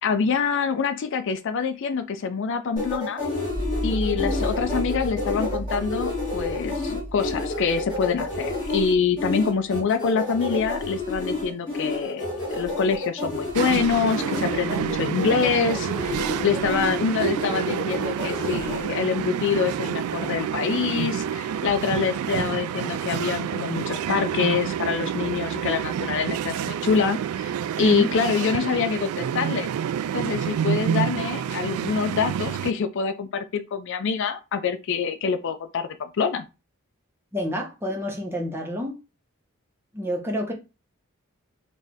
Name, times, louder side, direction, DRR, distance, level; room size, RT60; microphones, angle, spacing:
voice 1, 0.0-3.2 3.8-12.3 12.5-29.7 30.1-36.5, left 6 dB, 55° left, 0.4 m, -25 dB
sound 1, 2.8-18.8, left 2 dB, 20° left, 1.7 m, -30 dB
sound 2, 3.5-9.5, right 1 dB, 65° right, 1.3 m, -34 dB
sound 3, 13.5-32.7, right 8 dB, 85° right, 0.3 m, -28 dB
voice 2, 37.3-39.0 39.9-40.5, left 1 dB, 10° right, 1.0 m, -27 dB
4.1 x 2.7 x 3.5 m
head